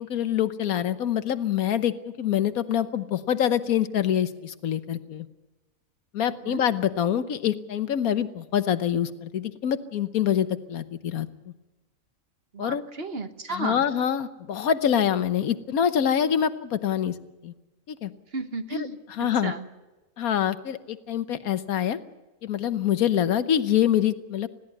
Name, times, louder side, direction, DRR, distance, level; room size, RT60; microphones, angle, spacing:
voice 1, 0.0-5.3 6.1-11.3 12.6-12.8 13.5-17.1 17.4-17.5 17.9-18.1 18.7-18.9 19.2-19.5 20.2-22.0 22.4-24.5, left 9 dB, 85° left, 12 dB, 1.4 m, -25 dB
voice 2, 6.2-6.7 12.5-13.8 18.3-19.7, right 3 dB, 45° right, 8 dB, 1.4 m, -34 dB
20.5 x 16.0 x 9.7 m, 1.1 s
omnidirectional pair, 1.5 m